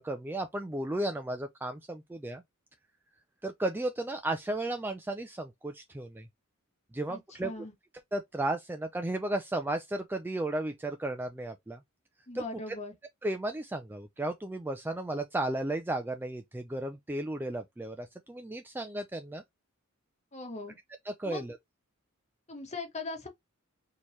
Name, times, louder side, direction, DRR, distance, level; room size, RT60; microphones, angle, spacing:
voice 1, 0.0-2.4 3.4-6.3 6.9-7.6 8.1-11.8 12.3-12.4 13.2-19.4 21.1-21.6, right 1 dB, 10° right, 0.3 m, -34 dB
voice 2, 7.1-7.7 12.3-12.9 20.3-20.8 21.2-21.5 22.5-23.3, left 3 dB, 30° left, 1.4 m, -40 dB
4.4 x 2.9 x 3.1 m
head